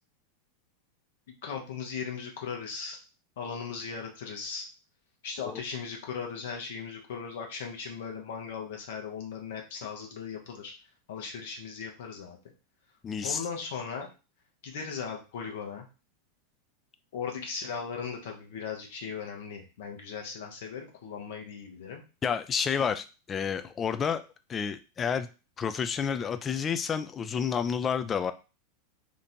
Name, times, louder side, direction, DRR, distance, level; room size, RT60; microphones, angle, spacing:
voice 1, 1.3-3.0 3.4-4.7 5.2-10.7 11.1-12.4 13.2-14.1 14.6-15.9 17.1-22.0, left 6 dB, 65° left, 2 dB, 0.9 m, -38 dB
voice 2, 13.0-13.4 22.2-24.2 24.5-25.3 25.6-28.3, left 7 dB, 25° left, 10 dB, 0.4 m, -30 dB
2.9 x 2.5 x 4.3 m, 0.32 s
figure-of-eight pair, 90°, 0 cm